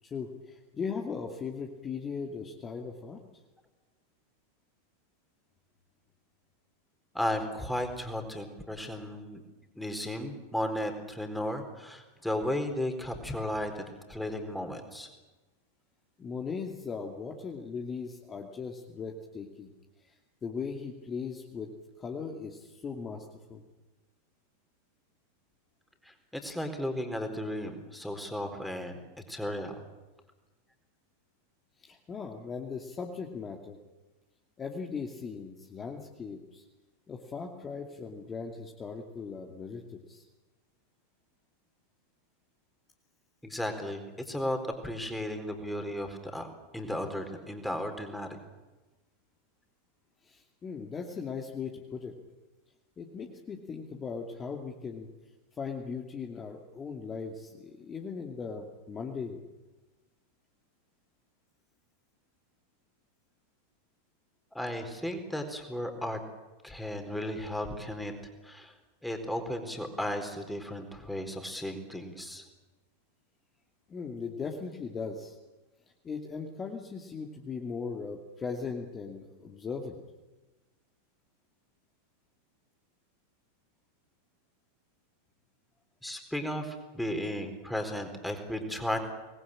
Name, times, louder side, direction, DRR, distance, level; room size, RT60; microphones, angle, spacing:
voice 1, 0.0-3.2 16.2-19.7 20.0-21.7 22.0-23.6 31.8-33.8 34.6-36.6 37.1-40.2 50.2-52.1 53.0-55.1 55.5-59.4 73.9-75.4 76.0-80.0, left 5 dB, 20° left, 1 dB, 2.6 m, -38 dB
voice 2, 7.1-9.4 9.8-15.1 26.0-29.0 29.3-29.8 43.4-44.6 44.8-46.5 46.7-48.4 64.5-66.2 66.6-68.1 68.4-68.7 69.0-72.4 86.0-89.0, left 1 dB, 5° left, 5 dB, 4.2 m, -35 dB
26.0 x 20.5 x 8.9 m, 1.1 s
figure-of-eight pair, 90°, 0 cm